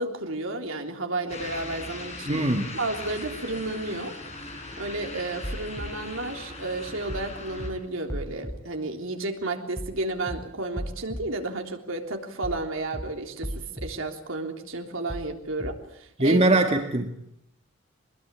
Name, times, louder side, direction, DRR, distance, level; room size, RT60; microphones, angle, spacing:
voice 1, 0.0-2.5 2.7-4.1 4.8-16.5, right 2 dB, 70° right, 4 dB, 3.5 m, -32 dB
sound 1, 1.3-7.7, left 2 dB, 30° left, 7.3 m, -39 dB
voice 2, 2.3-2.7 16.2-17.1, right 2 dB, 30° right, 5 dB, 1.8 m, -21 dB
sound 2, 5.4-5.9 7.1-7.3 7.6-7.7 8.1-8.5 9.8-10.0 10.3-10.4 10.8-11.2 12.4-12.6 12.9-13.0 13.4-13.9 15.1-15.3 15.6-15.7, equal, 15° left, 3.8 m, -34 dB
23.5 x 21.0 x 8.7 m, 0.72 s
head